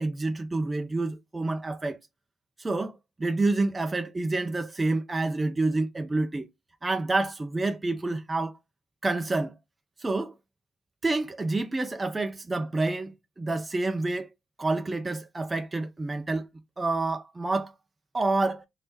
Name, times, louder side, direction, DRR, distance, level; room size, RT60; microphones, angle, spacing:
voice 1, 0.0-2.0 2.6-6.5 6.8-8.5 9.0-9.5 10.0-10.3 11.0-14.3 14.6-16.5 16.8-17.7 18.1-18.6, right 2 dB, 20° right, 0.4 m, -28 dB
2.9 x 2.7 x 3.4 m
cardioid pair, 90°, 0 cm